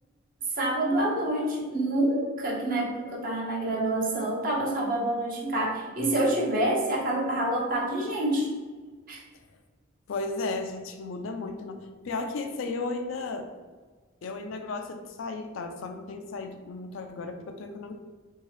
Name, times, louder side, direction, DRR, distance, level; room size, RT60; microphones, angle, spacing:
voice 1, 0.5-8.5 9.1-9.2, right 1 dB, 45° right, -3 dB, 0.9 m, -27 dB
voice 2, 10.1-13.5 14.2-17.9, left 3 dB, 85° left, 5 dB, 0.4 m, -34 dB
3.7 x 2.7 x 3.2 m, 1.4 s
head